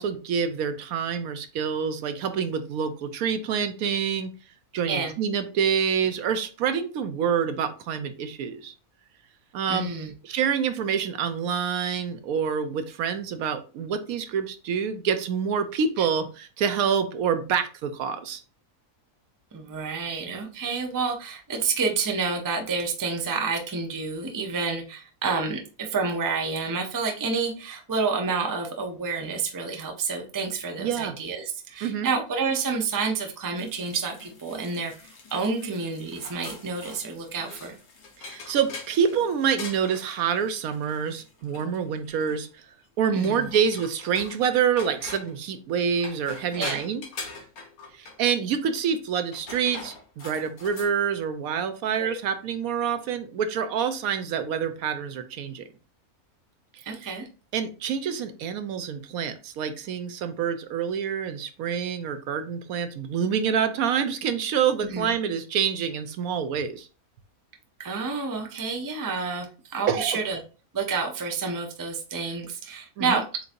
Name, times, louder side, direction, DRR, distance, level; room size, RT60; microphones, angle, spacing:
voice 1, 0.0-4.3 4.7-8.7 9.5-9.9 10.2-18.4 30.8-31.1 31.8-32.1 38.2-42.6 43.0-47.0 47.9-55.7 57.5-66.9 69.9-70.2 73.0-73.2, right 7 dB, 75° right, 9 dB, 1.0 m, -27 dB
voice 2, 9.7-10.1 16.0-16.1 19.5-37.7 43.1-43.5 46.6-46.8 52.0-52.2 56.8-57.3 64.8-65.1 67.8-70.4 70.7-73.4, right 4 dB, 20° right, 3 dB, 0.5 m, -29 dB
sound 1, 33.6-42.5 43.2-44.5 44.8-45.4 45.9-48.2 49.2-50.9, left 4 dB, 75° left, 1.7 m, -43 dB
7.5 x 2.6 x 2.5 m, 0.36 s
omnidirectional pair, 1.6 m